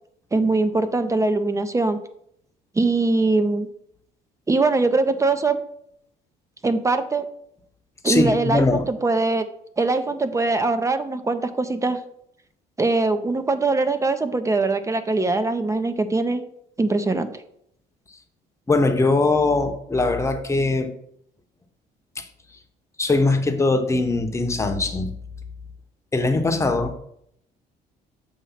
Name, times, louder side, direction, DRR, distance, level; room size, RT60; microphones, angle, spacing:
voice 1, 0.3-2.0 2.8-3.7 4.5-5.6 6.6-7.3 8.0-9.4 9.8-12.0 12.8-16.4 16.8-17.3, right 3 dB, 20° right, 10 dB, 0.5 m, -22 dB
voice 2, 8.0-8.9 18.7-20.9 22.2-22.3 23.0-25.1 26.1-27.0, left 2 dB, 15° left, 6 dB, 0.9 m, -21 dB
7.0 x 3.0 x 5.7 m, 0.71 s
cardioid pair, 110°, 17 cm